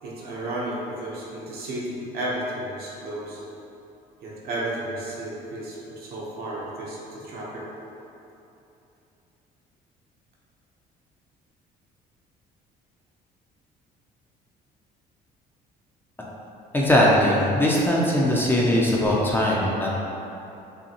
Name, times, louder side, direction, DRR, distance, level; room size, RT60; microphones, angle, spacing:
voice 1, 0.0-3.4 4.2-7.7, right 1 dB, 65° right, -5 dB, 0.9 m, -33 dB
voice 2, 16.7-20.0, left 1 dB, 10° left, -5 dB, 0.6 m, -20 dB
5.4 x 2.2 x 2.9 m, 2.9 s
cardioid pair, 110°, 17 cm